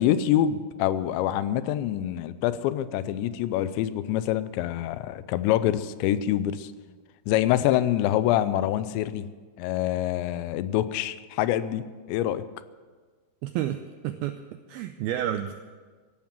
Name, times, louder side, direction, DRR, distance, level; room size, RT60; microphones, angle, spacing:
voice 1, 0.0-6.7 7.3-9.3 9.6-12.5, left 12 dB, 85° left, 14 dB, 2.9 m, -26 dB
voice 2, 13.4-14.4 14.7-15.6, right 11 dB, 90° right, 8 dB, 2.1 m, -30 dB
16.0 x 12.0 x 7.5 m, 1.5 s
omnidirectional pair, 5.1 m